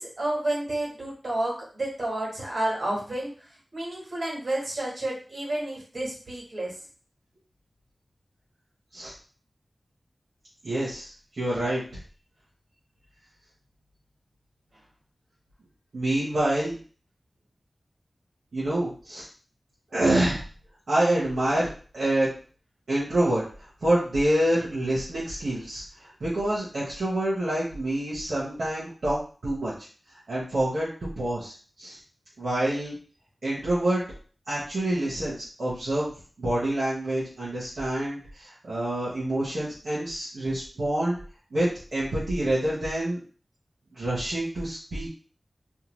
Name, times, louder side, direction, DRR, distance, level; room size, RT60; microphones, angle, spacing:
voice 1, 0.0-6.8, right 1 dB, 70° right, -4 dB, 1.2 m, -30 dB
voice 2, 10.6-11.8 15.9-16.8 18.5-19.3 19.9-20.4 20.9-21.7 21.9-22.3 22.9-23.4 23.8-25.8 26.2-29.7 30.3-30.9 31.2-32.0 32.4-33.0 33.4-34.0 34.5-36.1 36.4-41.2 41.5-43.2 43.9-45.1, right 1 dB, 90° right, -8 dB, 0.8 m, -27 dB
2.7 x 2.2 x 3.0 m, 0.41 s
cardioid pair, 45°, 0 cm